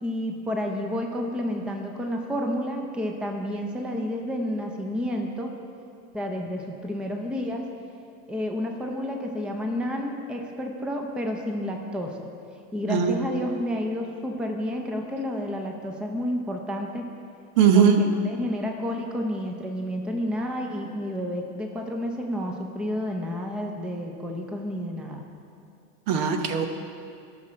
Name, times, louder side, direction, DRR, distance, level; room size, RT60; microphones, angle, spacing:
voice 1, 0.0-5.5 6.1-7.7 8.3-12.3 12.7-17.1 17.7-17.9 18.2-25.2, equal, ahead, 2 dB, 0.6 m, -30 dB
voice 2, 17.6-17.9 26.1-26.7, right 8 dB, 65° right, 6 dB, 1.1 m, -19 dB
12.5 x 6.3 x 4.4 m, 2.4 s
supercardioid pair, 120°, 46 cm